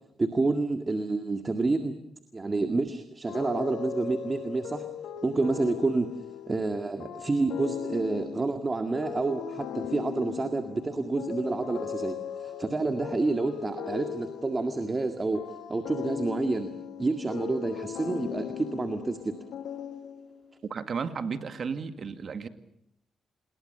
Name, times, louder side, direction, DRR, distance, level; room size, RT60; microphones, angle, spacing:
voice 1, 0.2-2.0 2.3-4.8 5.2-6.1 6.5-15.4 15.7-16.7 17.0-19.4, right 3 dB, 30° right, 7 dB, 2.0 m, -29 dB
sound 1, 3.3-20.5, left 8 dB, 80° left, 1.7 m, -38 dB
voice 2, 20.7-22.5, right 5 dB, 55° right, 9 dB, 2.0 m, -33 dB
27.5 x 21.5 x 6.8 m, 0.76 s
cardioid pair, 75°, 0 cm